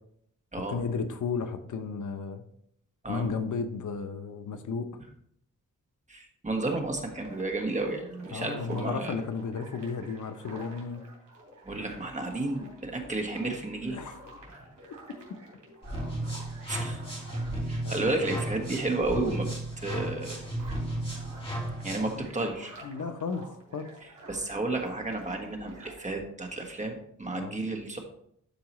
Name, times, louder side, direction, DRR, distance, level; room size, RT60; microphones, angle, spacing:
voice 1, 0.5-2.4 3.1-4.9 8.3-11.0 13.9-14.1 17.8-18.1 22.8-23.9 27.3-27.6, left 5 dB, 70° left, 8 dB, 0.8 m, -33 dB
voice 2, 6.1-9.2 11.6-14.0 16.7-17.0 17.7-19.5 19.8-20.4 21.8-22.7 24.3-28.0, right 2 dB, 25° right, 2 dB, 1.3 m, -32 dB
sound 1, 6.5-26.1, right 1 dB, 65° right, 3.4 m, -50 dB
sound 2, 15.8-22.2, right 1 dB, 15° left, 2.3 m, -34 dB
12.0 x 4.7 x 3.1 m, 0.68 s
wide cardioid pair, 135°, 32 cm